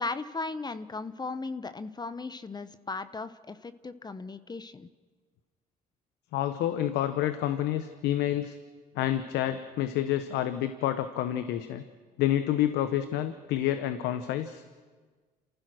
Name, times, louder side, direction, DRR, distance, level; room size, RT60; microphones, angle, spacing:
voice 1, 0.0-4.9, left 3 dB, 25° left, 12 dB, 0.9 m, -37 dB
voice 2, 6.3-8.6 9.0-11.8 12.2-14.6, left 12 dB, 80° left, 10 dB, 1.0 m, -28 dB
28.0 x 15.0 x 6.3 m, 1.5 s
supercardioid pair, 75°, 17 cm